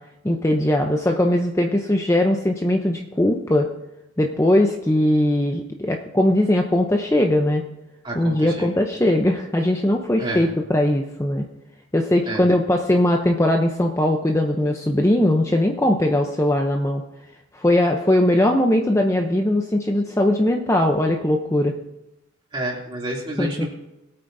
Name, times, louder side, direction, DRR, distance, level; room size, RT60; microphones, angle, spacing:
voice 1, 0.2-3.7 4.2-7.6 8.1-11.5 11.9-17.0 17.5-21.8 23.4-23.7, left 1 dB, 15° left, 2 dB, 0.6 m, -20 dB
voice 2, 8.0-8.7 10.2-10.4 12.3-12.4 22.5-23.7, right 1 dB, 25° right, -3 dB, 2.7 m, -29 dB
20.0 x 8.7 x 2.6 m, 0.95 s
head